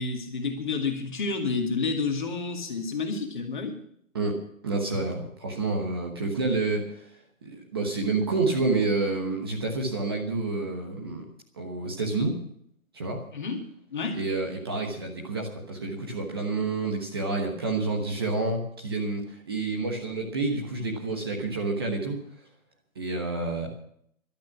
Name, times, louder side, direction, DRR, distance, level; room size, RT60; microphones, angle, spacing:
voice 1, 0.0-3.8 13.3-13.6 13.9-14.2, left 4 dB, 35° left, 3 dB, 2.2 m, -29 dB
voice 2, 4.6-7.1 7.4-11.2 11.6-12.3 12.9-13.2 14.1-22.2 22.9-23.7, right 3 dB, 20° right, 0 dB, 1.2 m, -29 dB
14.5 x 12.5 x 6.0 m, 0.67 s
figure-of-eight pair, 160°, 41 cm